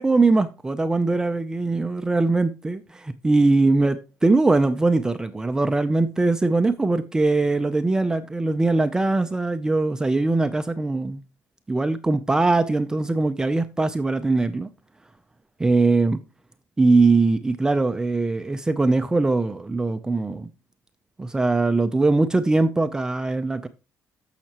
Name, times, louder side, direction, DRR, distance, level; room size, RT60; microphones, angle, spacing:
voice 1, 0.0-11.2 11.7-14.7 15.6-16.2 16.8-20.5 21.2-23.7, right 3 dB, 15° right, 0.5 m, -21 dB
14.0 x 5.8 x 2.9 m
cardioid pair, 125°, 5 cm